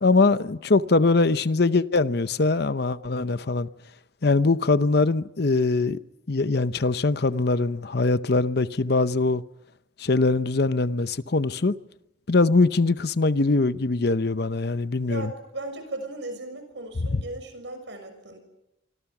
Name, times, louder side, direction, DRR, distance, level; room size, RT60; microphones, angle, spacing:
voice 1, 0.0-3.7 4.2-6.0 6.3-9.4 10.0-11.7 12.3-15.3 17.1-17.2, left 3 dB, 60° left, 0.8 m, -22 dB
voice 2, 15.0-18.4, right 2 dB, 75° right, 6.5 m, -37 dB
26.5 x 25.0 x 6.1 m
head